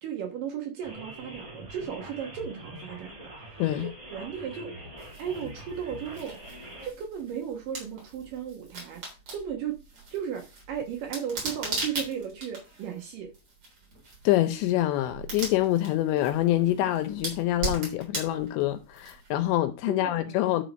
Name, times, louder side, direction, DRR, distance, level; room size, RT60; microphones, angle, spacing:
voice 1, 0.0-3.3 3.8-4.7 5.2-6.4 6.8-9.0 9.3-9.8 10.1-13.3 19.9-20.4, right 8 dB, 70° right, 2.2 m, -35 dB
sound 1, 0.8-6.9, equal, 20° right, 3.3 m, -44 dB
sound 2, 5.0-19.5, right 2 dB, 40° right, 4.4 m, -39 dB
voice 2, 14.2-20.6, left 14 dB, 80° left, 2.7 m, -26 dB
11.0 x 4.8 x 5.1 m
omnidirectional pair, 5.4 m